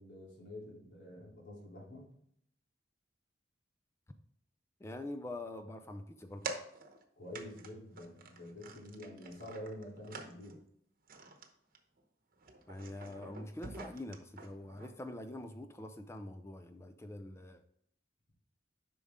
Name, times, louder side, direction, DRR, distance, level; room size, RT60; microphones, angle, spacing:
voice 1, 0.0-2.1 7.2-10.6, left 1 dB, 80° left, -3 dB, 3.0 m, -48 dB
voice 2, 4.8-6.5 12.7-17.6, left 1 dB, 15° left, 7 dB, 0.4 m, -45 dB
sound 1, 6.4-7.0 7.3-7.7 8.0-10.6 11.1-11.5 11.7-12.0 12.3-14.9, right 3 dB, 55° right, 1.0 m, -47 dB
8.4 x 5.5 x 3.5 m, 0.70 s
head